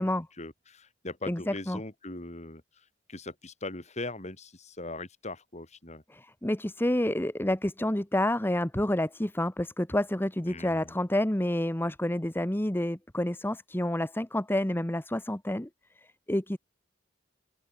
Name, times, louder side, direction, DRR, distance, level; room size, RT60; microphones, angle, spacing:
voice 1, 0.4-6.0 10.5-10.9, left 2 dB, 35° left, 4.4 m, -40 dB
voice 2, 1.3-1.8 6.1-15.7 16.3-16.6, left 1 dB, 10° left, 1.1 m, -29 dB
open air
head